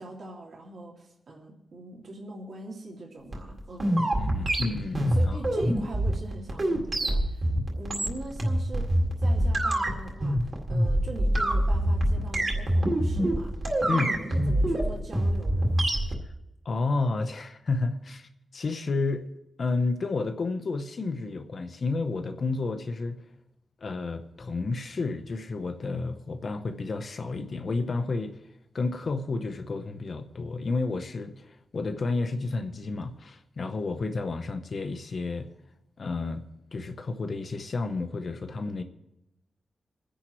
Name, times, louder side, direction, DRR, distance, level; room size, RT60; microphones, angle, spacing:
voice 1, 0.0-4.1 5.1-15.9, right 2 dB, 60° right, 2.4 m, -42 dB
sound 1, 3.3-16.2, right 1 dB, 35° right, 2.0 m, -25 dB
voice 2, 4.2-5.4 13.9-14.2 16.6-19.2 19.6-23.2 23.8-28.4 28.7-35.5 36.0-36.4 36.7-38.8, left 3 dB, 45° left, 0.8 m, -31 dB
28.5 x 10.0 x 3.1 m
wide cardioid pair, 170°, 0 cm